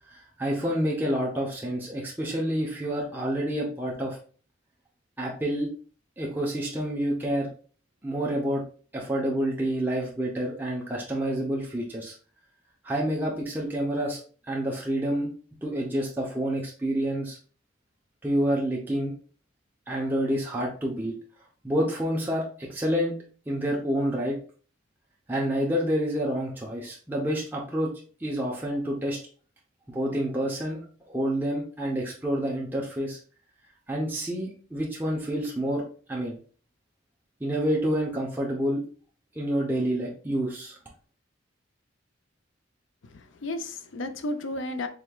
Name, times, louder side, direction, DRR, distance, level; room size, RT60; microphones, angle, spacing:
voice 1, 0.1-4.2 5.2-5.7 6.2-7.5 8.0-8.6 8.9-12.1 12.8-14.2 14.5-15.3 15.6-17.4 18.2-19.1 19.9-21.1 21.6-23.1 23.5-24.4 25.3-27.9 28.2-29.2 29.9-30.8 31.1-33.2 33.9-35.8 36.1-36.4 37.4-38.8 39.3-40.8, equal, 10° right, 0.7 m, -28 dB
voice 2, 43.0-44.9, left 1 dB, 75° left, 0.6 m, -33 dB
5.0 x 3.5 x 2.3 m
head